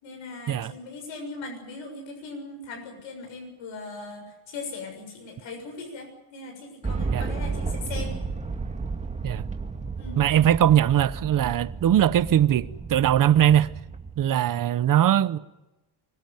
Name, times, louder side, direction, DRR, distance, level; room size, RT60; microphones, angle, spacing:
voice 1, 0.0-8.2 10.0-10.2 14.2-14.4, left 3 dB, 70° left, 7.2 m, -39 dB
sound 1, 6.8-14.2, right 4 dB, 15° right, 2.2 m, -33 dB
voice 2, 10.2-13.7 14.2-15.4, right 11 dB, 40° right, 0.9 m, -21 dB
25.0 x 17.5 x 9.2 m
cardioid pair, 145°, 49 cm